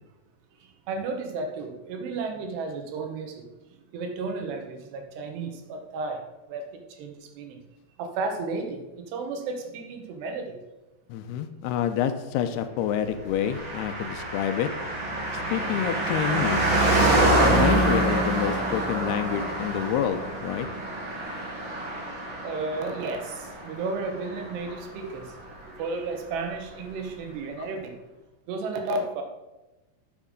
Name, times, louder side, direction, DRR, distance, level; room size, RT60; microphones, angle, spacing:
voice 1, 0.6-6.2 6.5-7.6 8.0-10.6 22.4-25.4 25.7-27.9 28.5-29.2, right 3 dB, 75° right, 4 dB, 3.2 m, -33 dB
voice 2, 11.1-14.7 15.5-16.6 17.4-20.7 21.3-21.5, left 9 dB, 80° left, 9 dB, 2.5 m, -28 dB
Car passing by, 13.4-25.3 25.5-25.6, right 1 dB, 55° right, 4.1 m, -26 dB
9.9 x 7.1 x 5.2 m, 1.0 s
omnidirectional pair, 4.9 m